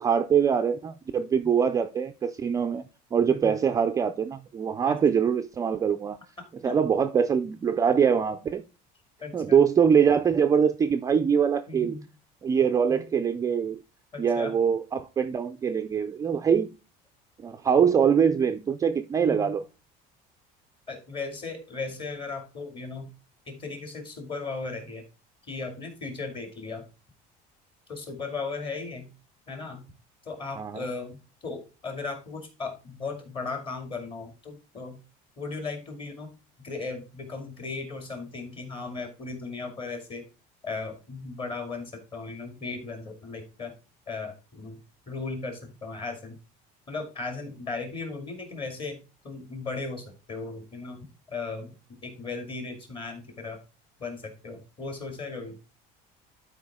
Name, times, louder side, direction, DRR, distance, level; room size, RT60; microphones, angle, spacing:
voice 1, 0.0-2.8 3.1-6.2 6.6-8.6 9.3-12.0 12.4-13.8 14.2-16.7 17.4-19.6 30.6-30.8, right 7 dB, 20° right, 0.3 m, -23 dB
voice 2, 3.3-3.6 4.9-5.0 6.6-6.7 9.2-9.6 11.7-12.1 12.9-13.0 14.1-14.5 19.2-19.6 20.9-23.1 23.5-25.0 25.4-26.9 27.9-29.1 29.5-29.9 30.2-31.2 31.4-35.0 35.4-36.3 36.6-40.2 40.6-43.7 44.1-44.8 45.1-46.4 46.9-49.0 49.2-53.6 54.0-55.6, left 3 dB, 30° left, 2.4 m, -36 dB
11.5 x 4.8 x 3.6 m
cardioid pair, 160°, 17 cm